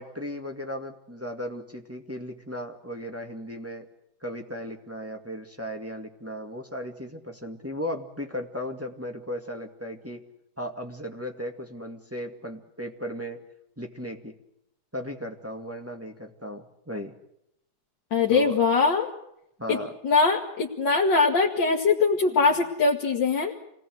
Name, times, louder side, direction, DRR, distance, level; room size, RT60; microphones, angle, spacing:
voice 1, 0.0-3.9 4.2-10.2 10.6-13.4 13.8-14.3 14.9-17.2 18.3-18.6 19.6-19.9, equal, 5° right, 2 dB, 2.0 m, -36 dB
voice 2, 18.1-19.1 19.7-19.8 20.0-23.5, left 4 dB, 60° left, -2 dB, 2.6 m, -22 dB
28.0 x 19.0 x 7.9 m, 0.79 s
omnidirectional pair, 2.3 m